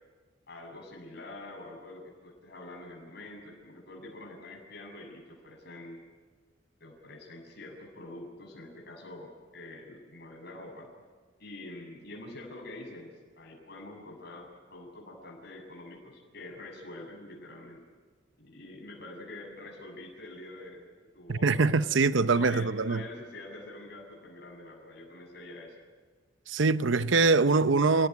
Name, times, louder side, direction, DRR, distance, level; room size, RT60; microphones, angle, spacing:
voice 1, 0.5-6.0 6.8-10.9 11.4-17.8 18.4-20.8 21.1-21.9 22.3-25.8, left 2 dB, 55° left, 7.6 m, -46 dB
voice 2, 21.3-23.0 26.5-28.1, right 3 dB, 70° right, 0.8 m, -23 dB
29.0 x 18.0 x 9.5 m
head